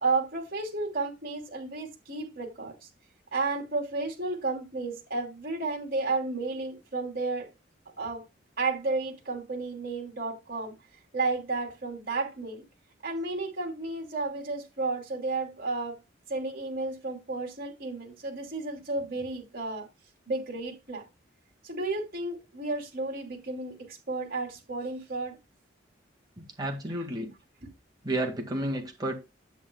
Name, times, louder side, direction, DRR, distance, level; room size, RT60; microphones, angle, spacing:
voice 1, 0.0-2.9 3.3-7.5 8.0-8.2 8.6-10.7 11.1-12.6 13.0-16.0 16.3-19.9 20.3-21.0 21.6-25.4, right 3 dB, 50° right, 3.0 m, -32 dB
voice 2, 26.4-27.3 28.0-29.1, right 1 dB, 20° right, 1.9 m, -31 dB
10.5 x 8.7 x 2.3 m
head